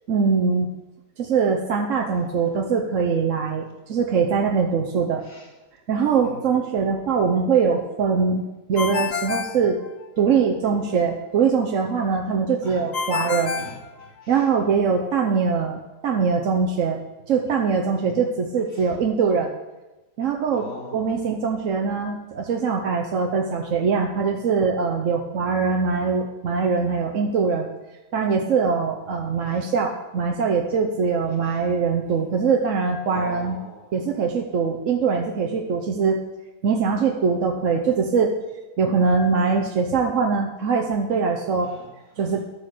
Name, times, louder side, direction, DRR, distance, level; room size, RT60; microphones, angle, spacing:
voice 1, 0.1-0.7 1.2-5.2 5.9-9.8 10.2-13.5 14.3-17.0 17.3-19.5 20.2-20.7 20.9-27.7 28.1-33.6 33.9-36.2 36.6-38.3 38.8-41.7 42.2-42.4, right 5 dB, 55° right, 2 dB, 1.1 m, -22 dB
voice 2, 5.2-5.5 6.2-6.5 12.6-14.5 18.0-18.2 18.7-18.9 20.5-21.2 29.4-29.7 31.4-31.6 33.0-33.8 41.6-42.4, left 1 dB, 40° left, -2 dB, 3.1 m, -41 dB
Ringtone, 8.8-10.4 12.9-14.6, left 5 dB, 70° left, 0.4 m, -29 dB
12.5 x 8.4 x 6.6 m, 1.1 s
omnidirectional pair, 1.8 m